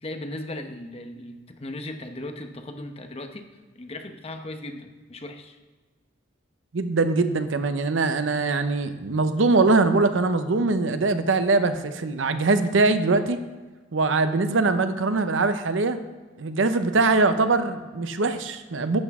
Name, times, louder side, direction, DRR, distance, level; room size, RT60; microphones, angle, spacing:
voice 1, 0.0-3.5 3.7-5.6, left 1 dB, 30° left, 6 dB, 0.8 m, -37 dB
voice 2, 6.7-13.4 13.9-16.0 16.4-19.0, right 3 dB, 85° right, 10 dB, 0.7 m, -22 dB
11.5 x 8.2 x 3.6 m, 1.3 s
head